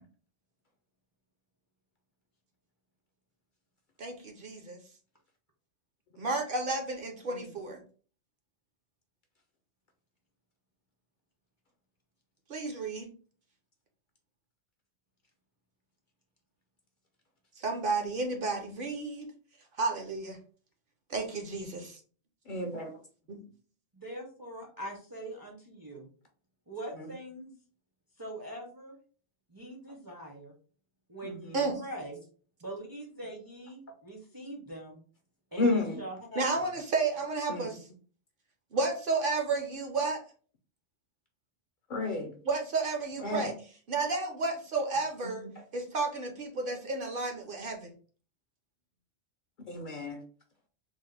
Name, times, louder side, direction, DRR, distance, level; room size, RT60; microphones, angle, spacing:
voice 1, 4.0-4.8 6.2-7.8 12.5-13.1 17.6-19.3 19.8-20.4 21.1-22.0 23.3-23.4 31.5-31.7 36.4-37.8 38.7-40.2 42.4-43.5 43.9-45.4 45.7-47.9, right 3 dB, 60° right, 4 dB, 0.7 m, -32 dB
voice 2, 22.5-22.9 31.2-31.6 35.6-35.9 37.5-37.7 41.9-42.3 43.2-43.5 49.7-50.2, left 2 dB, 60° left, 3 dB, 0.6 m, -31 dB
voice 3, 23.9-26.1 26.7-27.5 28.2-29.0 29.5-30.5 31.1-32.2 32.6-35.0 35.5-36.7 43.2-43.5, right 1 dB, 30° right, 0 dB, 0.4 m, -43 dB
3.5 x 2.0 x 3.2 m, 0.41 s
omnidirectional pair, 1.2 m